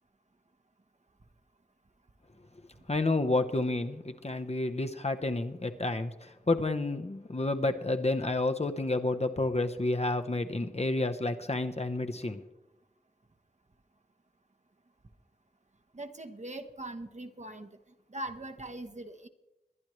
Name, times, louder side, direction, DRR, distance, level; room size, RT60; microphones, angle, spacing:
voice 1, 2.9-12.4, left 2 dB, 40° left, 7 dB, 0.9 m, -30 dB
voice 2, 15.9-17.7 18.1-19.3, right 1 dB, 45° right, 6 dB, 1.1 m, -41 dB
22.0 x 10.5 x 3.2 m, 0.92 s
wide cardioid pair, 50°, 16 cm